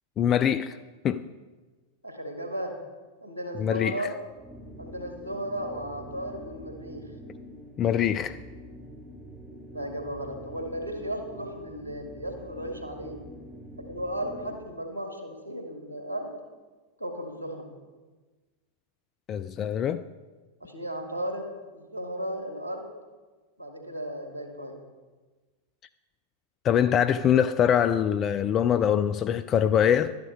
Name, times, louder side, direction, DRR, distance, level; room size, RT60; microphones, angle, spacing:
voice 1, 0.2-0.8 1.0-1.2 3.6-4.0 7.8-8.4 19.3-20.1 26.6-30.2, left 9 dB, 30° left, 0.3 m, -23 dB
voice 2, 2.0-2.7 3.2-4.2 4.8-7.1 9.7-13.2 13.9-16.3 17.0-17.7 20.6-21.5 21.7-22.9 23.6-24.8, equal, 85° left, 2.1 m, -35 dB
sound 1, 4.3-14.7, equal, 15° right, 3.1 m, -45 dB
12.5 x 10.5 x 4.7 m
figure-of-eight pair, 90°, 0 cm